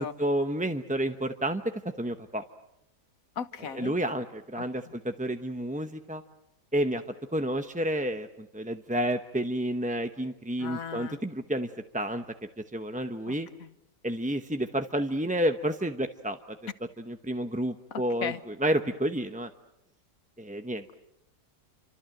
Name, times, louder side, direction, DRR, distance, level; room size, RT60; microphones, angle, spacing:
voice 1, 0.0-1.6 2.0-2.4 3.7-6.2 6.7-7.0 7.3-12.2 12.7-13.5 14.0-16.4 17.0-19.5 20.4-20.8, right 1 dB, 5° right, 7 dB, 0.6 m, -30 dB
voice 2, 3.4-3.9 10.6-11.2 13.3-13.4 13.6-13.7 17.9-18.4, left 7 dB, 65° left, 12 dB, 1.6 m, -36 dB
28.5 x 26.0 x 7.8 m, 0.84 s
omnidirectional pair, 1.6 m